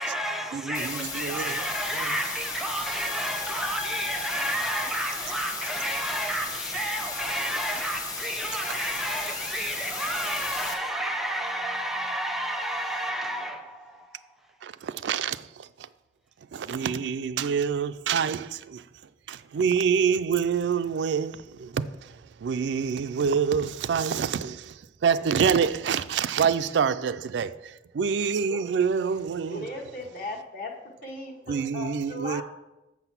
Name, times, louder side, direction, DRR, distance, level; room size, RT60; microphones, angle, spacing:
voice 1, 0.0-14.3, right 1 dB, ahead, 0.5 m, -31 dB
voice 2, 0.5-1.7 1.9-2.1 14.6-15.7 16.5-18.8 19.3-22.1 22.4-24.7 25.0-29.7 31.5-32.4, right 6 dB, 90° right, 0.4 m, -26 dB
sound 1, 0.7-10.7, left 3 dB, 20° left, 0.9 m, -35 dB
voice 3, 28.2-28.6 29.5-30.7 31.0-32.4, left 2 dB, 50° left, 1.0 m, -37 dB
7.2 x 5.9 x 5.8 m
head